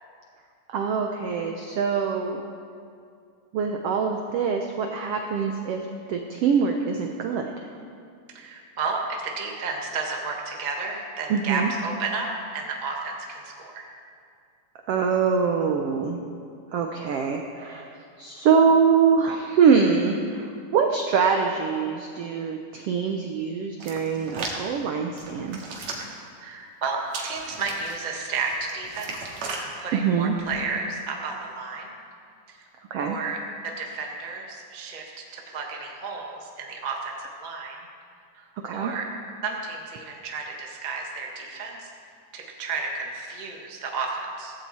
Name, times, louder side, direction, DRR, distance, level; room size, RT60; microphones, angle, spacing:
voice 1, 0.7-2.4 3.5-5.8 6.1-7.5 11.3-11.7 14.9-16.2 16.7-25.6 29.9-30.4 32.9-33.2 38.6-38.9, right 6 dB, 80° right, 3 dB, 1.4 m, -24 dB
voice 2, 8.3-13.8 26.4-31.9 32.5-32.6 33.0-33.4 33.6-37.8 38.3-39.0 39.4-41.9 42.3-44.5, right 4 dB, 35° right, 0 dB, 0.7 m, -32 dB
Hands, 23.8-24.6 25.2-26.2 27.1-28.0 28.5-29.6 30.3-30.6, right 4 dB, 60° right, 2.9 m, -36 dB
16.0 x 15.5 x 4.3 m, 2.3 s
omnidirectional pair, 3.8 m